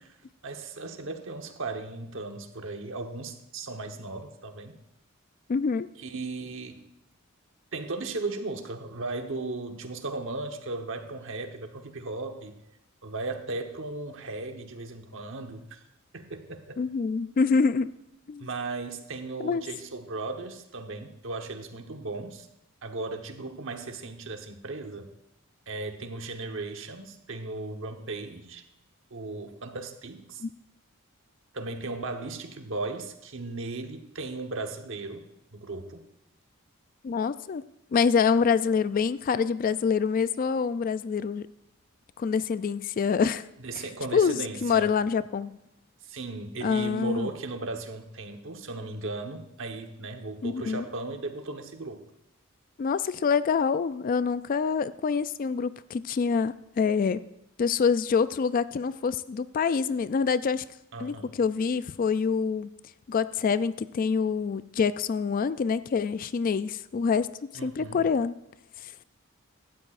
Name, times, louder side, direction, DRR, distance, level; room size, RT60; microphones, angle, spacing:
voice 1, 0.4-4.8 6.0-6.8 7.7-12.6 13.0-15.8 16.1-16.8 18.4-22.5 22.8-25.1 25.7-28.6 29.1-30.4 31.5-35.2 35.5-36.1 43.6-44.9 46.0-52.0 60.9-61.4 67.5-68.0, right 3 dB, 60° right, 5 dB, 1.1 m, -36 dB
voice 2, 5.5-5.9 16.8-17.9 18.3-18.5 19.4-19.6 30.4-30.5 37.0-37.6 37.9-41.5 42.2-43.4 44.1-45.6 46.6-47.3 50.4-50.8 52.8-57.2 57.6-60.6 61.0-62.7 63.1-68.3 68.8-68.9, left 5 dB, 40° left, 15 dB, 0.3 m, -26 dB
16.5 x 12.5 x 2.5 m, 0.85 s
head